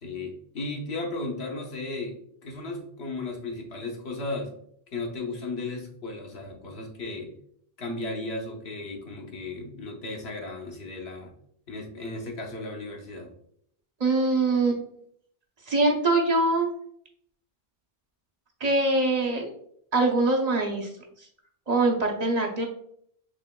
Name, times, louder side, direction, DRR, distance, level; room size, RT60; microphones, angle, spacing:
voice 1, 0.0-4.5 4.9-7.3 7.8-11.3 11.7-13.3, left 2 dB, 80° left, 1 dB, 1.2 m, -35 dB
voice 2, 14.0-14.8 15.7-16.7 18.6-19.5 19.9-20.9 21.7-22.7, right 2 dB, 45° right, 1 dB, 0.7 m, -23 dB
6.2 x 3.0 x 2.2 m, 0.68 s
omnidirectional pair, 1.1 m